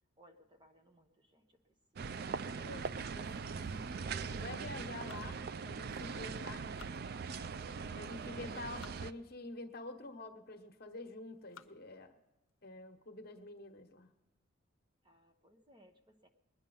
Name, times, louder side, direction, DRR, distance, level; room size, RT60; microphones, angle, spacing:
voice 1, 0.2-1.6 1.9-2.1 8.1-8.8 15.0-16.3, right 1 dB, 20° right, 5 dB, 1.0 m, -63 dB
sound 1, 2.0-9.1, right 5 dB, 50° right, 0.4 m, -41 dB
voice 2, 2.5-3.6 4.2-6.7 7.9-12.1 12.6-14.1, left 2 dB, 50° left, 6 dB, 1.2 m, -48 dB
sound 2, 4.9-6.1 6.5-7.6 8.3-9.1 9.7-9.8 10.5-10.9 11.3-11.9 12.5-12.6 13.0-13.1 13.5-13.8, left 7 dB, 75° left, 0.7 m, -60 dB
21.0 x 9.9 x 5.5 m, 1.1 s
head